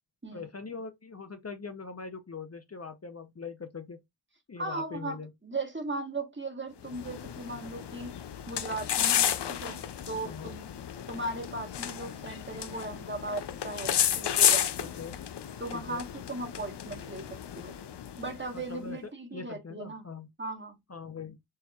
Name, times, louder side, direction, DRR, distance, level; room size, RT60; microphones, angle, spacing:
voice 1, 0.3-4.0 4.5-5.3 10.2-10.5 14.8-15.2 15.7-16.0 18.5-20.3 20.9-21.4, left 5 dB, 40° left, 0.6 m, -42 dB
voice 2, 4.6-8.1 8.5-9.8 10.1-10.6 11.1-14.9 15.6-17.7 18.2-20.1 20.4-20.8, right 2 dB, 30° right, 1.3 m, -37 dB
sound 1, 6.8-18.6, left 9 dB, 85° left, 0.5 m, -32 dB
6.5 x 2.9 x 2.3 m
wide cardioid pair, 60°, 40 cm